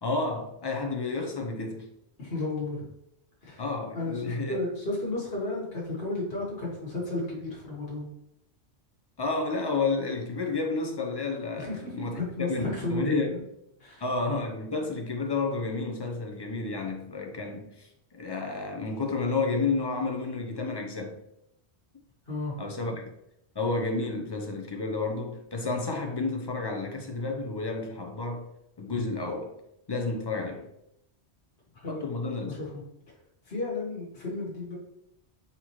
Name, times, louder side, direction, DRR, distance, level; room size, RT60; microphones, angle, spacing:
voice 1, 0.0-1.9 3.6-4.6 9.2-12.2 12.5-13.4 14.0-21.2 22.6-23.0 23.6-28.5 28.8-29.6 29.9-30.7 31.9-32.6, left 3 dB, 30° left, 0.5 m, -31 dB
voice 2, 2.2-2.9 3.4-3.6 3.9-8.1 11.5-13.4 13.8-14.0 22.3-22.5 31.7-32.1 32.5-32.7 33.4-34.8, left 2 dB, 60° left, 1.6 m, -33 dB
4.2 x 4.1 x 3.0 m
omnidirectional pair, 1.1 m